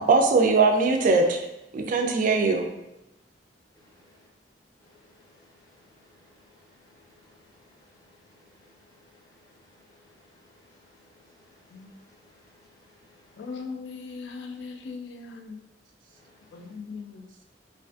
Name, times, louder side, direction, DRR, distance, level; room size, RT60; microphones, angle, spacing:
voice 1, 0.0-1.4 1.7-2.7, right 3 dB, 50° right, 4 dB, 0.3 m, -21 dB
voice 2, 3.7-4.3 4.8-13.6 16.1-16.7, left 2 dB, 20° left, -3 dB, 0.5 m, -60 dB
voice 3, 13.4-15.6 16.5-17.4, left 4 dB, 70° left, 4 dB, 0.3 m, -39 dB
2.5 x 2.4 x 2.3 m, 0.93 s
head